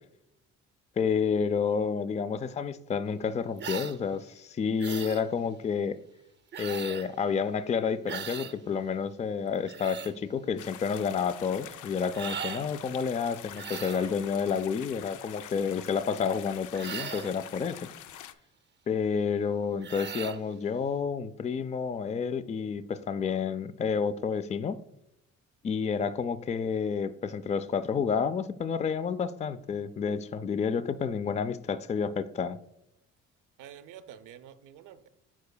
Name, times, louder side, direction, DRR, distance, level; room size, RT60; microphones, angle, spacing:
voice 1, 1.0-6.0 6.6-17.9 18.9-24.8 25.6-32.6, left 6 dB, 25° left, 13 dB, 0.4 m, -30 dB
sound 1, 3.6-4.0 4.8-5.2 6.5-7.1 8.1-8.5 9.5-10.1 12.1-12.7 13.5-14.1 16.7-17.4 19.8-20.4, right 7 dB, 35° right, 0.6 m, -38 dB
sound 2, 10.6-18.3, left 11 dB, 85° left, 0.5 m, -45 dB
voice 2, 33.6-35.1, right 9 dB, 85° right, 10 dB, 0.6 m, -49 dB
12.0 x 4.7 x 2.2 m, 0.81 s
cardioid pair, 90°, 30 cm